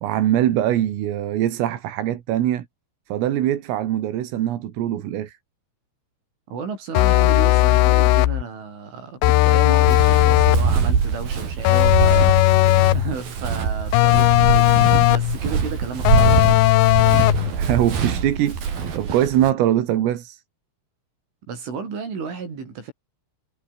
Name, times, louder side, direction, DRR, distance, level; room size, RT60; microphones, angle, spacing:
voice 1, 0.0-2.7 3.1-5.4 17.6-20.4, right 12 dB, 90° right, 4.9 m, -22 dB
voice 2, 6.5-12.4 12.9-16.7 21.5-22.9, right 5 dB, 70° right, 9.2 m, -33 dB
sound 1, 6.9-8.4 9.2-10.7 11.6-13.1 13.9-15.4 16.0-17.5, left 18 dB, 80° left, 2.8 m, -16 dB
Walk footsteps, 9.9-19.5, right 6 dB, 50° right, 5.4 m, -24 dB
omnidirectional pair, 5.7 m